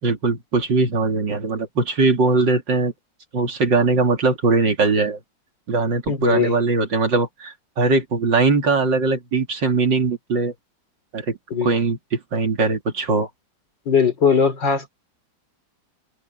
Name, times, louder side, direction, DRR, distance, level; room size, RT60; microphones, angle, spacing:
voice 1, 0.0-2.9 3.3-5.2 5.7-10.5 11.1-13.3, right 3 dB, 75° right, 3.3 m, -20 dB
voice 2, 6.1-6.6 11.5-11.7 13.9-14.9, left 6 dB, 75° left, 4.7 m, -19 dB
open air
omnidirectional pair, 2.0 m